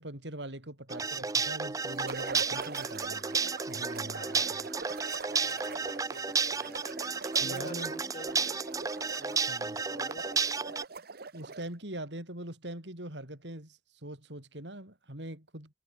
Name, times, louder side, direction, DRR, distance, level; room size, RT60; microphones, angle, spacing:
voice 1, 0.0-3.4 3.7-4.6 7.4-7.9 9.5-9.8 11.3-15.7, right 1 dB, 80° right, 6.3 m, -42 dB
sound 1, 0.9-10.8, right 5 dB, 20° right, 0.5 m, -32 dB
sound 2, 1.9-11.8, right 4 dB, 60° right, 1.1 m, -43 dB
voice 2, 4.1-4.5 5.3-6.8 7.4-8.5 9.2-9.4 9.8-10.3, left 2 dB, 40° left, 3.7 m, -48 dB
head